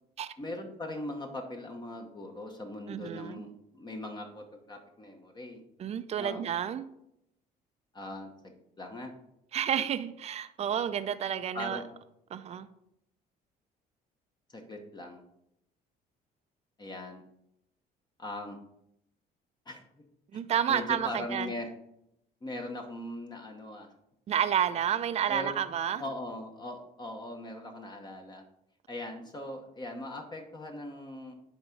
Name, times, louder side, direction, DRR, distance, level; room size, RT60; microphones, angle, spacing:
voice 1, 0.4-5.6 6.2-6.4 7.9-9.1 11.5-11.9 14.5-15.2 16.8-17.2 18.2-18.6 19.7-19.8 20.3-20.4 20.7-21.7 22.4-23.9 25.3-25.5 26.0-28.4 28.9-31.3, left 1 dB, 25° left, 3 dB, 1.0 m, -40 dB
voice 2, 2.9-3.4 5.8-6.8 9.5-11.8 12.3-12.7 20.3-21.5 24.3-26.0, right 9 dB, 40° right, 11 dB, 0.5 m, -30 dB
10.0 x 3.6 x 5.2 m, 0.81 s
cardioid pair, 110°, 17 cm